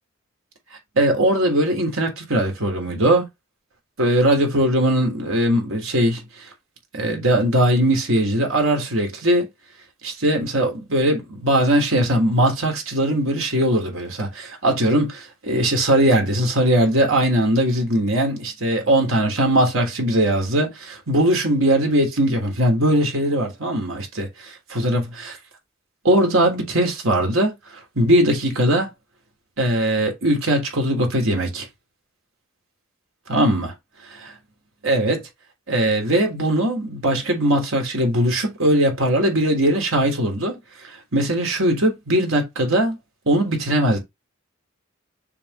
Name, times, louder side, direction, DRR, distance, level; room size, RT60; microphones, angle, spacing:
voice 1, 0.9-3.2 4.0-6.2 6.9-9.5 10.0-24.3 24.7-25.4 26.0-27.6 27.9-28.9 29.6-31.7 33.3-33.7 34.2-34.3 34.8-35.2 35.7-40.6 41.1-43.0 43.3-44.0, right 1 dB, 75° right, 3.3 m, -20 dB
7.2 x 5.0 x 3.2 m
head